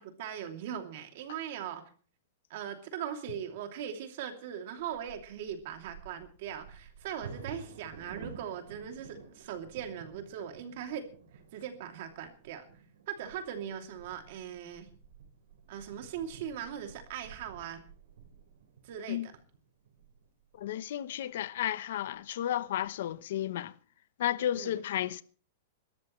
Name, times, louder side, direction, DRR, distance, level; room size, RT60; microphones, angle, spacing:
voice 1, 0.0-1.8 2.5-11.1 11.5-12.7 13.1-14.9 15.7-17.8 18.8-19.3 24.5-24.8, right 9 dB, 45° right, 2.8 m, -40 dB
Bird vocalization bird call bird song / Wind / Thunder, 4.8-20.7 21.3-21.4 21.8-22.2 22.6-23.1, right 6 dB, 85° right, 4.5 m, -52 dB
voice 2, 20.6-23.7 24.2-25.2, left 11 dB, 60° left, 0.9 m, -33 dB
26.0 x 13.5 x 3.2 m
supercardioid pair, 175°, 0 cm